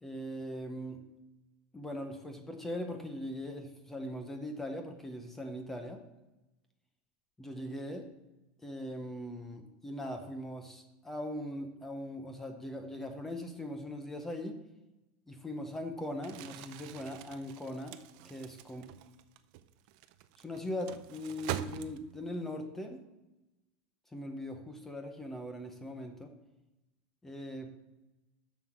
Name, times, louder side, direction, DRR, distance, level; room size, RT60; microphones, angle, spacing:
voice 1, 0.0-1.0 1.7-6.0 7.4-8.1 8.6-14.6 15.3-18.0 18.2-18.8 20.4-23.0 24.1-26.3 27.2-27.7, left 1 dB, 5° left, 5 dB, 0.7 m, -40 dB
Crumpling crinkling, 16.1-22.3, right 13 dB, 50° right, 0.5 m, -44 dB
7.3 x 6.4 x 5.8 m, 1.0 s
supercardioid pair, 175°, 5 cm